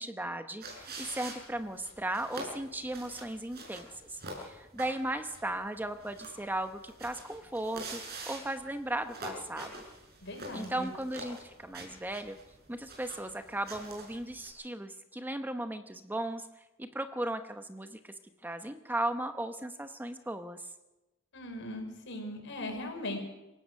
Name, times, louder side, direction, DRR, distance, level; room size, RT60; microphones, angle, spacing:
voice 1, 0.0-9.7 10.5-12.4 12.7-18.1 18.4-20.7, right 1 dB, 10° right, 8 dB, 0.9 m, -36 dB
sound 1, 0.6-14.5, right 2 dB, 50° right, 6.3 m, -46 dB
voice 2, 10.2-10.9 21.3-23.2, left 1 dB, 60° left, 3 dB, 5.8 m, -39 dB
27.0 x 16.5 x 6.5 m, 1.0 s
head